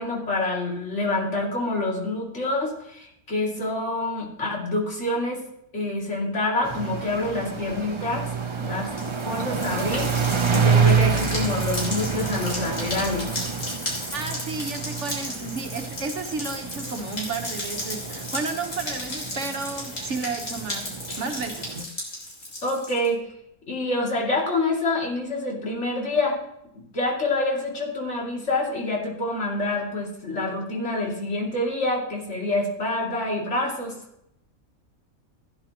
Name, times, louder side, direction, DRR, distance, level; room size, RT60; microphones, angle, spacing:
voice 1, 0.0-5.4 5.7-8.3 8.6-13.3 22.6-23.2 23.7-26.4 26.9-33.9, left 2 dB, 55° left, -2 dB, 2.8 m, -27 dB
sound 1, 6.6-21.8, right 6 dB, 30° right, 0.5 m, -28 dB
sound 2, 8.8-23.1, left 1 dB, 90° left, 3.7 m, -35 dB
voice 2, 14.1-20.9 21.2-21.9, right 4 dB, 60° right, 4 dB, 1.3 m, -32 dB
16.0 x 9.9 x 2.9 m, 0.78 s
omnidirectional pair, 1.5 m